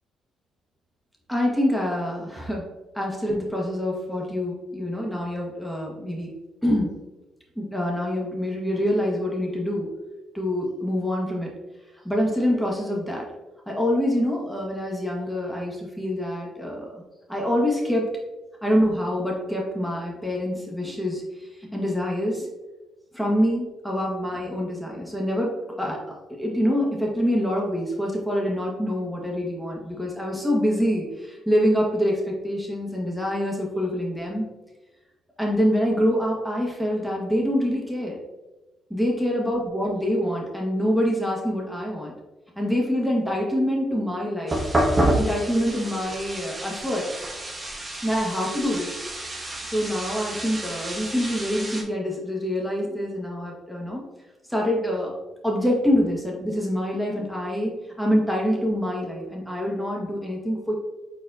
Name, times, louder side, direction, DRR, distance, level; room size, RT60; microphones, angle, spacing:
voice 1, 1.3-2.7 2.9-6.3 6.6-6.9 7.5-9.9 10.3-11.5 12.0-13.3 13.7-17.0 17.3-18.1 18.6-22.5 23.1-26.0 26.4-34.5 35.4-38.2 38.9-42.1 42.6-44.6 45.2-47.1 48.0-49.0 49.6-54.0 54.5-55.1 55.4-57.7 58.0-60.7, equal, ahead, -2 dB, 1.3 m, -25 dB
sound 1, 44.5-51.8, right 1 dB, 20° right, 0.8 m, -28 dB
4.4 x 4.2 x 2.6 m, 1.1 s
cardioid pair, 90°, 0 cm